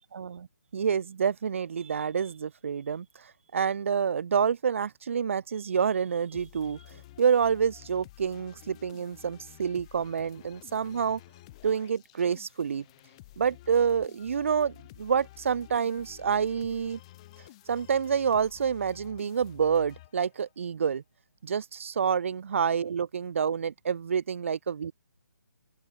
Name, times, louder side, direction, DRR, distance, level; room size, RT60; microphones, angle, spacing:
voice 1, 0.1-0.5 0.7-11.2 11.6-12.8 13.4-17.0 17.7-21.0 21.4-24.9, right 7 dB, 45° right, 0.5 m, -28 dB
sound 1, 6.3-20.6, left 17 dB, 20° left, 0.9 m, -52 dB
open air
hypercardioid pair, 165°, 10 cm